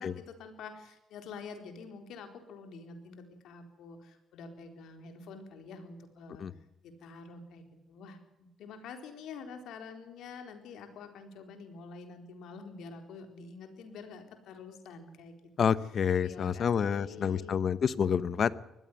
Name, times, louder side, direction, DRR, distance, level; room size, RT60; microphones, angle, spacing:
voice 1, 0.0-6.4 6.8-15.4 16.2-17.6, left 4 dB, 80° left, 6 dB, 4.1 m, -47 dB
voice 2, 15.6-18.5, left 7 dB, 55° left, 17 dB, 1.0 m, -28 dB
20.0 x 15.0 x 9.4 m, 0.94 s
cardioid pair, 90°, 0 cm